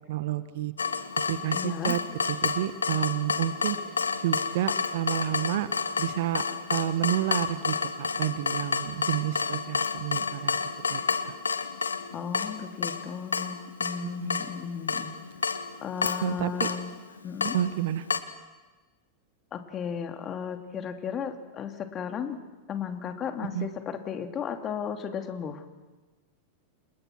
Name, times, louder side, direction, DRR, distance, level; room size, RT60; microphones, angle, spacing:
voice 1, 0.1-0.7 1.3-2.0 2.3-3.8 4.2-5.7 6.0-6.4 6.7-10.6 10.9-11.3 14.2-14.5 16.2-16.7 17.5-18.1 23.5-23.7, right 13 dB, 55° right, 13 dB, 1.4 m, -30 dB
Water tap faucet / Drip, 0.8-18.2, left 5 dB, 75° left, 1.4 m, -30 dB
voice 2, 1.5-2.0 12.1-15.1 15.8-16.9 17.2-17.6 19.5-22.4 22.7-25.6, left 7 dB, 30° left, 6 dB, 2.8 m, -35 dB
29.5 x 28.5 x 6.3 m, 1.2 s
figure-of-eight pair, 90°, 0 cm